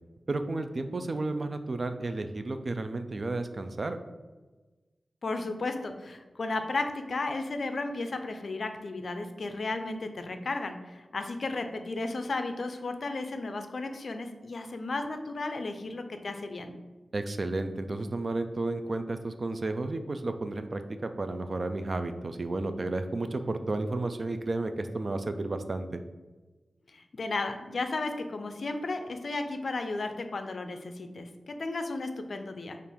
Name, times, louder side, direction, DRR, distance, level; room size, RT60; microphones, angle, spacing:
voice 1, 0.3-4.0 17.1-26.0, right 2 dB, 50° right, 8 dB, 0.3 m, -32 dB
voice 2, 5.2-16.7 26.9-32.8, left 3 dB, 65° left, 7 dB, 0.4 m, -34 dB
4.3 x 2.5 x 3.5 m, 1.2 s
wide cardioid pair, 75°, 0 cm